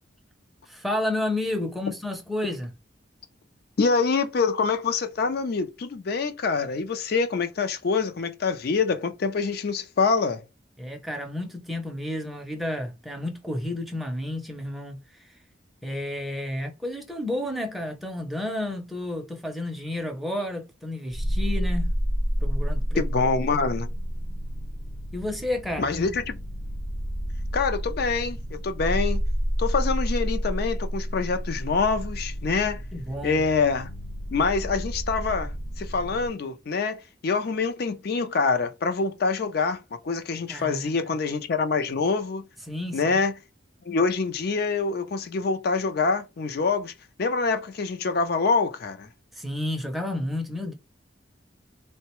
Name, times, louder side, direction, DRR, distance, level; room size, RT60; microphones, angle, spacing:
voice 1, 0.7-2.7 10.8-15.3 15.8-22.0 22.4-23.0 25.1-26.2 32.9-33.4 40.5-41.1 42.7-43.2 49.3-50.7, left 1 dB, ahead, 0.5 m, -31 dB
voice 2, 3.8-10.4 23.0-23.9 25.8-26.2 27.5-29.2 29.6-32.8 33.2-33.9 34.3-35.5 35.8-42.4 42.9-43.3 43.9-46.9 47.2-49.1, left 4 dB, 55° left, 0.4 m, -25 dB
sound 1, 21.1-36.3, equal, 80° left, 0.9 m, -30 dB
3.6 x 2.1 x 2.9 m
head